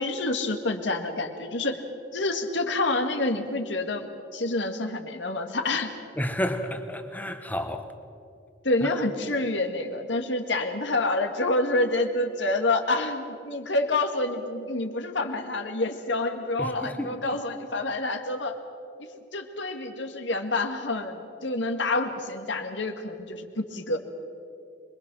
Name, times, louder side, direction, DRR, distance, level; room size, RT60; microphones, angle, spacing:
voice 1, 0.0-1.8 2.1-4.1 4.3-5.9 8.6-18.6 19.0-24.0, left 2 dB, 70° left, 1.9 m, -28 dB
voice 2, 6.2-7.9 16.6-17.2, equal, 10° left, 1.3 m, -31 dB
25.5 x 21.5 x 6.2 m
head